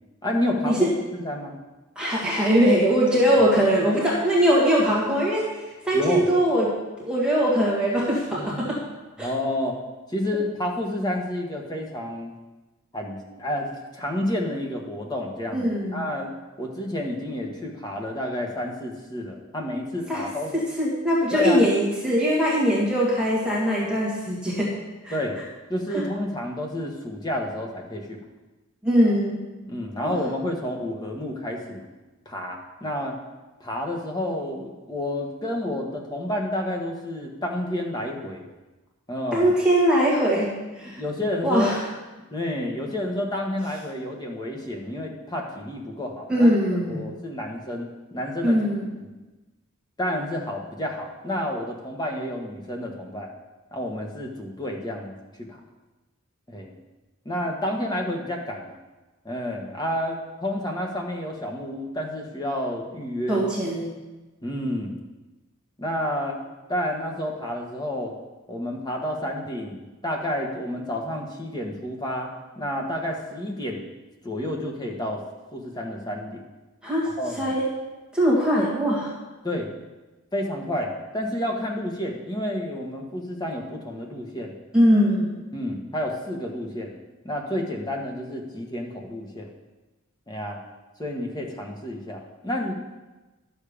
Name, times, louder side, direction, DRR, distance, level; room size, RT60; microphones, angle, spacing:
voice 1, 0.2-1.5 5.9-6.3 9.2-9.8 10.1-12.3 12.9-16.3 16.6-20.5 21.3-21.7 25.1-25.4 25.7-28.2 29.7-31.9 32.2-33.2 33.6-38.5 39.1-39.5 40.8-41.8 42.3-46.5 46.9-48.6 50.0-53.3 53.7-55.1 55.4-55.6 56.5-56.7 57.2-58.8 59.2-63.4 64.4-64.9 65.8-66.4 66.7-68.1 68.5-73.8 74.2-75.2 75.5-76.5 77.2-77.6 79.4-79.7 80.3-84.5 85.5-87.0 87.2-89.5 90.3-90.6 91.0-92.7, left 1 dB, 20° left, 0 dB, 1.4 m, -30 dB
voice 2, 2.0-6.7 7.0-8.8 9.2-9.3 15.5-16.0 20.1-20.3 20.8-24.7 25.0-25.2 25.9-26.0 28.8-29.4 30.0-30.1 39.3-41.0 41.4-41.8 46.3-47.1 48.4-48.9 63.3-63.9 76.8-77.1 77.4-77.6 78.1-79.1 84.7-85.3, equal, 5° right, -6 dB, 2.0 m, -21 dB
11.5 x 7.1 x 5.1 m, 1.1 s
head